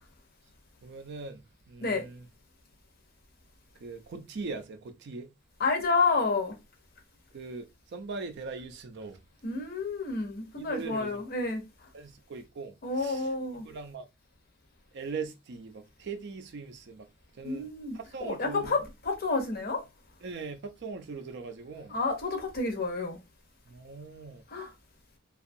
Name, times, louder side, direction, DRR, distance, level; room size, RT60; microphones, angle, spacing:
voice 1, 0.8-2.3 3.8-5.3 7.3-9.2 10.6-11.2 11.9-14.1 14.9-17.1 17.3-18.7 20.2-21.9 23.7-24.4, right 4 dB, 55° right, 0.4 m, -41 dB
voice 2, 5.6-6.6 9.4-11.6 12.8-13.7 17.4-18.8 19.0-19.8 21.9-23.2 24.5-24.7, left 3 dB, 45° left, 0.7 m, -29 dB
2.5 x 2.3 x 2.6 m
head